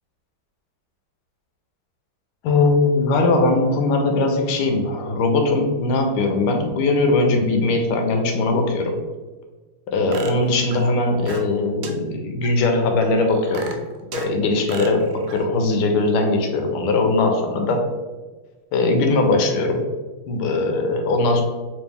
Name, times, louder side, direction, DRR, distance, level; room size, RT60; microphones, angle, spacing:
voice 1, 2.4-9.0 9.9-13.7 14.1-17.9 18.7-19.8 20.3-21.4, left 2 dB, 90° left, 4 dB, 1.5 m, -20 dB
sound 1, 10.1-11.6 11.8-11.9 12.4-12.5 13.0-14.3 14.7-15.5, right 4 dB, 75° right, 1.4 m, -35 dB
3.4 x 3.1 x 3.4 m, 1.3 s
omnidirectional pair, 2.4 m